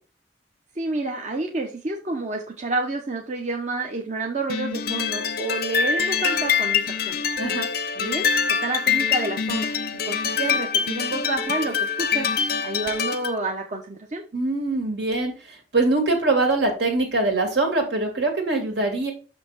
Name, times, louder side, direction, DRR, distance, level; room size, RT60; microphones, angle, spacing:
voice 1, 0.7-7.2 8.0-8.3 8.6-9.7 10.1-12.3 12.6-14.2, right 2 dB, 40° right, 1 dB, 1.0 m, -29 dB
sound 1, 4.5-13.4, left 6 dB, 60° left, 0.7 m, -24 dB
voice 2, 7.4-7.7 14.3-19.1, right 2 dB, 75° right, 2 dB, 2.5 m, -23 dB
6.4 x 5.9 x 4.2 m, 0.34 s
head